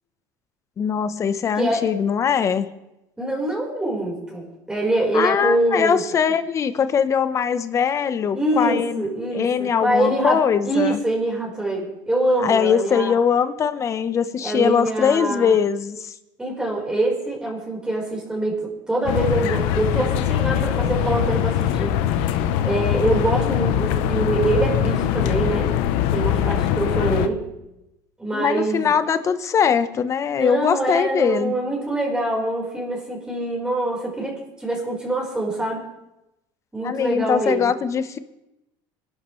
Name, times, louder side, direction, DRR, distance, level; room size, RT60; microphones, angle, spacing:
voice 1, 0.8-2.7 5.1-9.1 9.3-11.0 12.4-16.1 28.3-31.6 36.8-38.2, left 7 dB, 35° left, 12 dB, 0.9 m, -21 dB
voice 2, 1.5-1.9 3.2-6.0 8.3-13.1 14.4-15.5 16.4-22.4 22.6-25.7 26.1-27.4 28.2-28.9 30.4-35.8 36.7-37.7, right 2 dB, 10° right, -2 dB, 4.5 m, -24 dB
sound 1, 19.1-27.3, left 10 dB, 80° left, 0.8 m, -22 dB
24.0 x 12.0 x 3.2 m, 0.91 s
cardioid pair, 130°, 9 cm